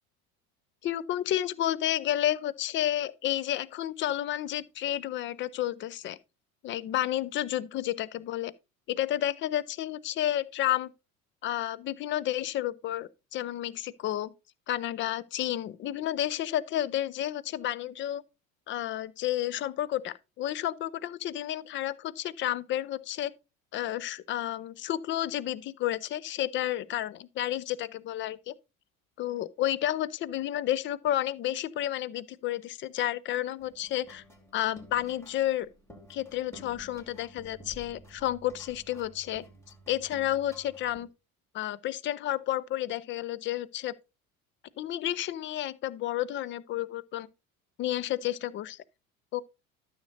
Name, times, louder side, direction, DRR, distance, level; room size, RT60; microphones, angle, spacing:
voice 1, 0.8-6.2 6.6-8.5 8.9-10.9 11.4-14.3 14.7-18.2 18.7-23.3 23.7-28.5 29.2-34.2 34.5-35.7 36.1-39.4 39.9-41.1 41.5-43.9 44.8-47.3 47.8-48.8 49.3-49.4, left 12 dB, 30° left, 0.4 m, -31 dB
sound 1, 33.6-41.1, right 1 dB, 5° left, 2.6 m, -52 dB
12.5 x 6.5 x 2.6 m
figure-of-eight pair, 70°, 43 cm